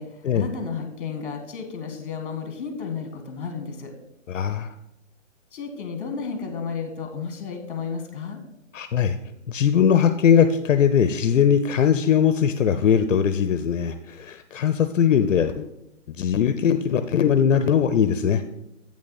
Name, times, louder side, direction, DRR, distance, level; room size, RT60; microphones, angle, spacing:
voice 1, 0.0-3.9 5.5-8.4, left 5 dB, 40° left, 5 dB, 1.7 m, -32 dB
voice 2, 4.3-4.7 8.7-9.2 9.5-15.7 16.1-18.4, left 8 dB, 75° left, 10 dB, 0.7 m, -20 dB
8.5 x 6.3 x 4.1 m, 0.84 s
hypercardioid pair, 165°, 38 cm